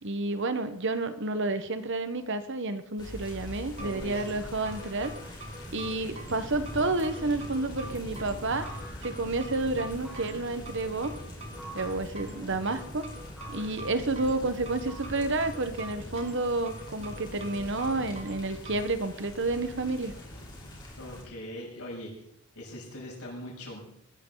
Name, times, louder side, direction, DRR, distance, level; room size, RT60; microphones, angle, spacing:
voice 1, 0.0-5.1 5.7-8.7 9.0-11.1 11.7-13.1 13.5-20.1, right 2 dB, 55° right, 10 dB, 1.3 m, -30 dB
sound 1, 3.0-21.2, left 1 dB, 20° left, 4.4 m, -43 dB
sound 2, 3.6-18.8, right 1 dB, 30° right, 2.1 m, -45 dB
voice 2, 3.8-4.4 21.0-22.1 22.6-23.8, left 1 dB, 85° left, -3 dB, 7.5 m, -41 dB
sound 3, 6.9-7.3 8.6-9.4 10.0-10.6 11.6-12.1 13.4-13.9 14.9-15.6, right 1 dB, ahead, 5.4 m, -48 dB
20.0 x 14.0 x 4.0 m, 0.72 s
head